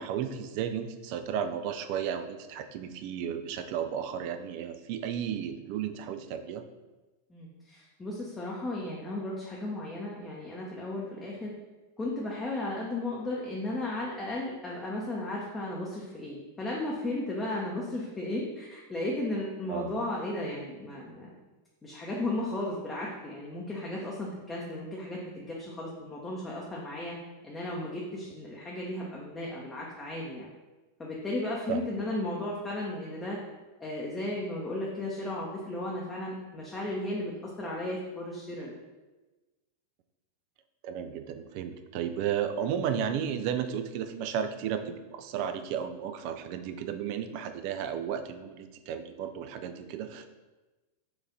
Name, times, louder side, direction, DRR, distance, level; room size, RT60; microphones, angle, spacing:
voice 1, 0.0-6.6 19.7-19.9 31.7-31.8 40.8-50.2, right 8 dB, 45° right, 9 dB, 0.3 m, -33 dB
voice 2, 7.3-11.5 12.0-21.4 21.8-27.2 27.4-30.5 31.0-33.4 33.8-38.8, left 1 dB, 15° left, -4 dB, 0.7 m, -35 dB
4.4 x 2.6 x 3.9 m, 1.2 s
figure-of-eight pair, 90°, 0 cm